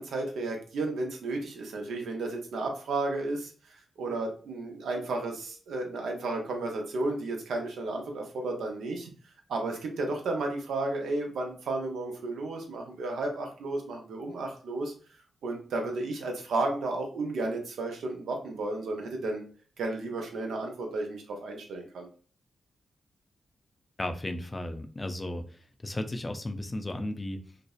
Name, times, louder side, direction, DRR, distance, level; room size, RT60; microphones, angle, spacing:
voice 1, 0.0-3.5 4.0-9.1 9.5-14.9 15.4-19.4 19.8-22.1, right 2 dB, 85° right, 2 dB, 0.5 m, -33 dB
voice 2, 24.0-25.4 25.8-27.4, left 1 dB, 30° left, 7 dB, 0.4 m, -34 dB
2.6 x 2.0 x 2.3 m, 0.41 s
cardioid pair, 55°, 0 cm